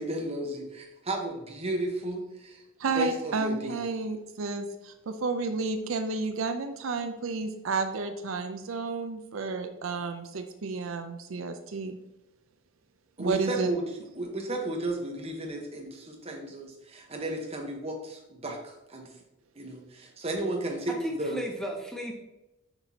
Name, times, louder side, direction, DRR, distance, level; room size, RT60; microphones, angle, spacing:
voice 1, 0.0-2.6 2.9-3.8 13.2-13.8 14.1-19.1 19.6-21.4, right 1 dB, 30° right, 1 dB, 1.0 m, -33 dB
voice 2, 2.8-12.0 13.2-13.7, right 4 dB, 70° right, 7 dB, 0.5 m, -31 dB
voice 3, 20.9-22.1, equal, ahead, 1 dB, 0.6 m, -35 dB
6.7 x 5.9 x 2.8 m, 0.95 s
head